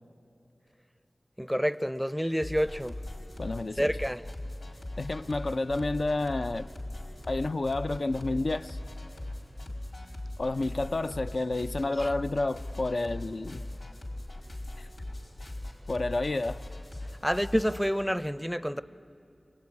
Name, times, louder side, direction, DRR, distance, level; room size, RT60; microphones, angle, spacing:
voice 1, 1.4-3.0 3.8-4.2 12.0-12.1 17.2-18.8, equal, ahead, 0.5 m, -28 dB
sound 1, 2.4-17.9, left 1 dB, 85° left, 4.9 m, -40 dB
voice 2, 3.4-3.9 5.0-6.7 7.3-8.8 10.4-13.6 14.8-14.9 15.9-16.6, left 2 dB, 65° left, 0.5 m, -30 dB
25.5 x 22.0 x 9.6 m
wide cardioid pair, 55°, 0 cm